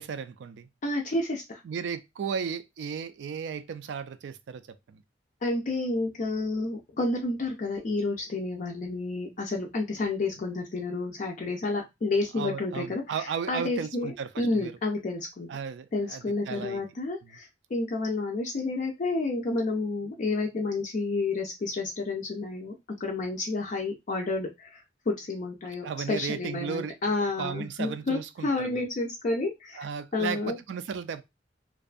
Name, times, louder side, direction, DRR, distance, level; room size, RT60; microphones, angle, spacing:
voice 1, 0.0-0.7 1.6-4.6 4.9-5.0 12.3-14.7 15.5-16.8 17.2-17.3 25.8-27.0 27.4-28.8 29.8-31.2, right 6 dB, 75° right, 0.3 m, -35 dB
voice 2, 0.8-1.6 5.4-13.2 13.5-15.5 15.9-22.7 23.0-24.8 25.1-29.8 30.1-30.6, left 2 dB, 45° left, 0.4 m, -30 dB
2.5 x 2.2 x 2.4 m
head